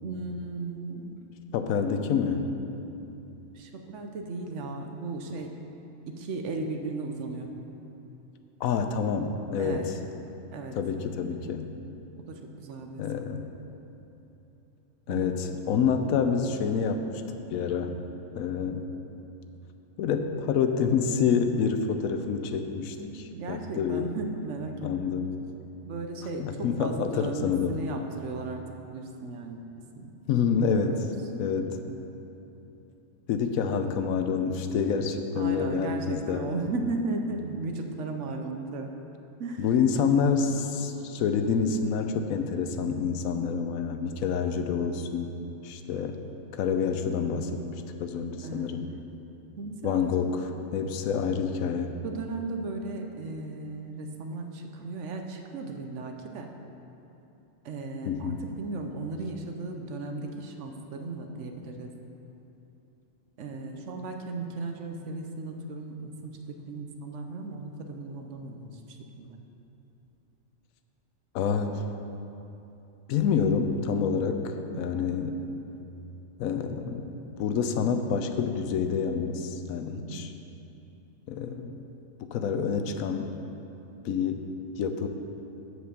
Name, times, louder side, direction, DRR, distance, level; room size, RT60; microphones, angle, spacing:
voice 1, 0.0-1.2 3.5-5.5 6.1-7.5 9.6-9.9 10.5-10.8 12.3-13.0 15.1-15.3 23.0-25.1 25.9-28.6 28.9-29.7 30.0-30.1 30.8-31.6 31.9-32.1 35.3-38.9 39.4-39.9 48.4-48.7 49.6-50.1 52.0-56.5 57.6-61.9 63.4-68.8 69.1-69.4 74.7-75.0 79.9-80.2, right 3 dB, 65° right, 4 dB, 1.0 m, -36 dB
voice 2, 1.5-2.5 8.6-10.0 10.7-11.7 13.0-13.4 15.1-17.9 18.3-18.9 20.0-24.1 24.8-25.3 26.4-27.8 30.3-31.1 31.4-31.8 33.3-36.5 39.6-45.3 45.6-46.2 46.6-48.9 49.8-52.0 58.1-58.4 71.3-71.8 73.1-75.4 76.4-80.3 81.3-81.8 82.2-83.4 84.0-84.5 84.8-85.1, left 6 dB, 90° left, 7 dB, 1.0 m, -28 dB
7.8 x 4.9 x 6.7 m, 3.0 s
omnidirectional pair, 1.4 m